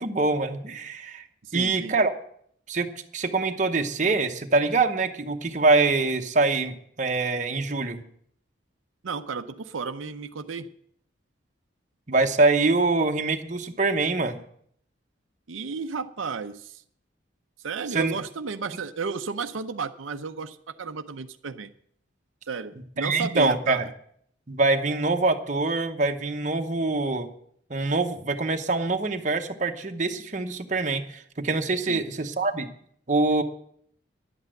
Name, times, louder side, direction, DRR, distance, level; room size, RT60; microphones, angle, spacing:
voice 1, 0.0-1.2 1.5-2.1 2.7-8.0 12.1-14.4 17.9-18.1 23.0-23.9 24.5-27.3 27.7-32.7 33.1-33.4, right 3 dB, 40° right, 5 dB, 0.9 m, -24 dB
voice 2, 1.4-2.0 9.0-10.7 15.5-16.8 17.6-21.7 22.5-23.8 31.9-32.0, right 5 dB, 90° right, 8 dB, 0.6 m, -33 dB
11.0 x 8.2 x 7.7 m, 0.66 s
head